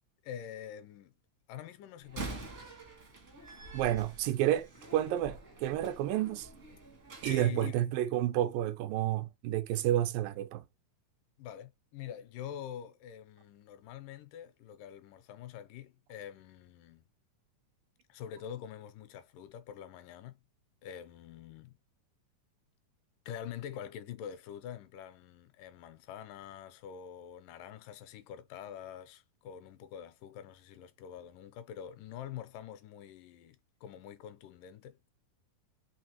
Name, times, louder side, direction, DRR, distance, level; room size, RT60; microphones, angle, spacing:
voice 1, 0.2-1.1 1.5-2.5 7.2-7.7 11.4-17.0 18.1-20.4 20.8-21.7 23.3-35.0, left 9 dB, 85° left, 2.2 m, -45 dB
Slam, 2.0-7.4, right 3 dB, 60° right, 0.7 m, -46 dB
voice 2, 3.7-6.5 7.2-10.7, right 13 dB, 85° right, 2.3 m, -30 dB
5.3 x 3.2 x 2.8 m
omnidirectional pair, 3.9 m